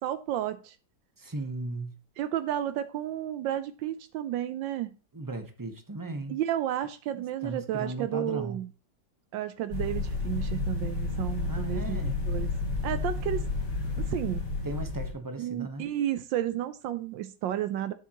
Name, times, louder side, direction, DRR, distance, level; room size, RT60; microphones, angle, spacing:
voice 1, 0.0-0.7 2.2-4.9 6.3-8.7 9.3-12.5 12.8-13.4 14.0-14.4 15.4-17.9, right 11 dB, 85° right, 1.3 m, -32 dB
voice 2, 1.2-1.9 5.1-6.4 7.1-8.6 11.4-12.2 14.6-16.0, right 2 dB, 20° right, 0.5 m, -37 dB
sound 1, 9.7-15.1, left 3 dB, 45° left, 3.5 m, -31 dB
11.5 x 7.3 x 2.9 m
omnidirectional pair, 2.0 m